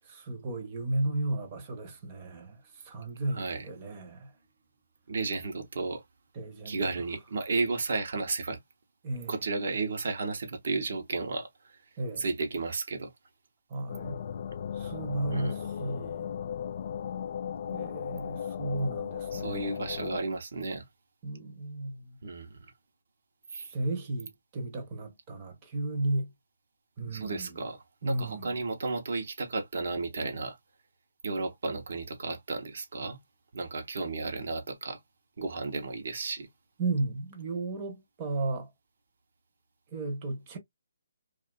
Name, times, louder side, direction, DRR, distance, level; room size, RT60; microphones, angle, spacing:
voice 1, 0.0-4.3 6.3-6.9 9.0-9.5 12.0-12.2 13.7-14.2 14.7-16.3 17.7-19.7 21.2-22.2 23.7-26.3 27.0-27.7 28.0-28.5 36.8-38.7 39.9-40.6, right 2 dB, 25° right, 0.9 m, -34 dB
voice 2, 3.3-3.6 5.1-6.0 6.6-8.6 9.3-11.8 12.2-13.1 15.3-15.7 19.3-20.8 22.2-22.7 23.5-23.7 27.1-30.6 31.2-33.2 33.5-35.0 35.4-36.5, right 3 dB, 60° right, 0.9 m, -33 dB
sound 1, 13.9-20.2, left 8 dB, 45° left, 0.3 m, -36 dB
2.6 x 2.4 x 2.3 m
hypercardioid pair, 160°, 0 cm